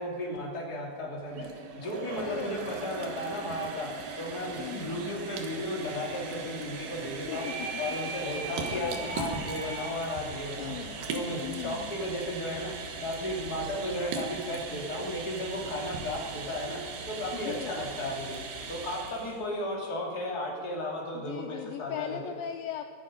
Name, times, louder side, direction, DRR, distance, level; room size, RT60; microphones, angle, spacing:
voice 1, 0.0-1.5 1.8-3.9 4.2-7.5 7.8-10.7 11.1-18.4 18.7-22.3, left 1 dB, 30° left, -2 dB, 2.5 m, -35 dB
sound 1, 1.3-19.4, right 4 dB, 70° right, 2.9 m, -39 dB
voice 2, 2.2-2.8 4.6-5.2 7.3-7.7 8.2-9.2 10.6-11.1 11.4-12.0 17.3-17.8 21.1-22.8, left 10 dB, 80° left, 7 dB, 2.1 m, -39 dB
sound 2, 7.3-10.1, right 4 dB, 85° right, 3.7 m, -38 dB
23.5 x 8.7 x 5.1 m, 2.1 s
omnidirectional pair, 4.4 m